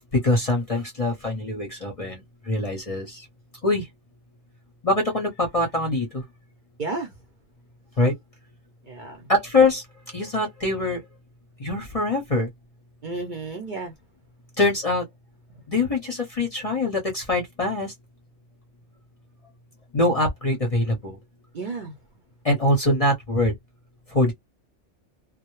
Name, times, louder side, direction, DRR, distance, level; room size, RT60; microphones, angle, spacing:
voice 1, 0.0-3.3 3.6-3.9 4.8-6.2 8.0-8.1 9.3-9.8 10.1-11.0 11.6-12.5 14.6-15.1 15.7-17.9 19.9-21.2 22.4-23.5 24.1-24.3, left 2 dB, 35° left, 0.6 m, -23 dB
voice 2, 6.8-7.1 8.9-9.3 13.0-13.9 21.5-21.9, right 3 dB, 50° right, 0.6 m, -32 dB
2.1 x 2.1 x 3.0 m
omnidirectional pair, 1.3 m